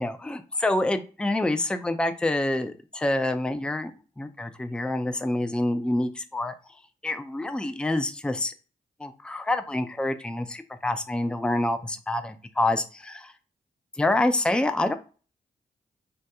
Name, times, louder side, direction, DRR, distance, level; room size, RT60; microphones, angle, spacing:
voice 1, 0.0-3.9 4.2-6.5 7.0-8.5 9.0-13.3 14.0-14.9, left 1 dB, 5° left, 8 dB, 0.4 m, -27 dB
2.8 x 2.1 x 3.4 m, 0.36 s
cardioid pair, 45°, 17 cm